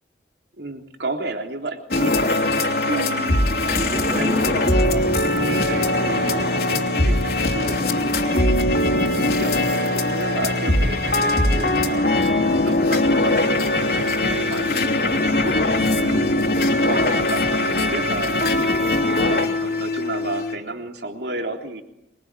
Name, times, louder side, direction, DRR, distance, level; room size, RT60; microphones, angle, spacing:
voice 1, 0.6-2.4 2.8-3.5 4.1-8.6 9.4-12.1 12.4-16.6 16.8-18.5 19.1-21.8, right 2 dB, 80° right, 4 dB, 3.5 m, -32 dB
sound 1, 1.9-20.6, left 2 dB, 60° left, 3.3 m, -21 dB
Splash splatter, 3.5-7.5, equal, 15° right, 2.9 m, -35 dB
25.5 x 23.0 x 9.9 m, 0.86 s
head